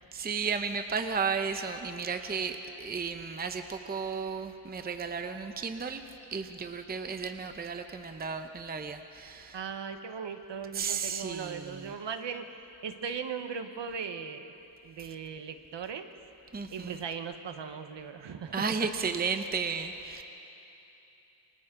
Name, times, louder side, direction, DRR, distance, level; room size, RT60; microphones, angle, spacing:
voice 1, 0.1-6.0 6.3-9.6 10.7-11.9 16.5-16.9 18.5-20.2, right 5 dB, 20° right, 7 dB, 0.7 m, -33 dB
voice 2, 9.5-14.5 14.8-16.1 16.7-18.9, right 6 dB, 65° right, 7 dB, 1.2 m, -38 dB
28.0 x 24.5 x 3.8 m, 2.9 s
wide cardioid pair, 160°, 48 cm